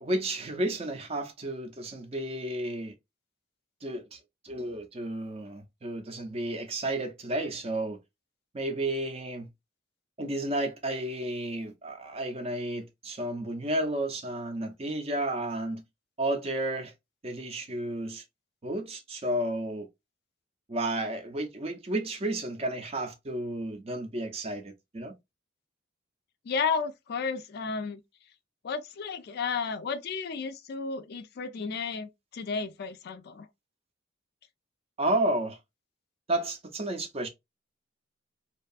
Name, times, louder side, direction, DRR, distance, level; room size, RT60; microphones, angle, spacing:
voice 1, 0.0-2.9 3.8-4.2 4.4-8.0 8.5-9.5 10.2-15.8 16.2-16.9 17.2-18.2 18.6-19.9 20.7-25.1 35.0-35.6 36.3-37.3, right 1 dB, 30° right, 0.5 m, -32 dB
voice 2, 26.5-28.0 28.6-33.5, left 5 dB, 55° left, 0.3 m, -33 dB
2.6 x 2.3 x 2.4 m
head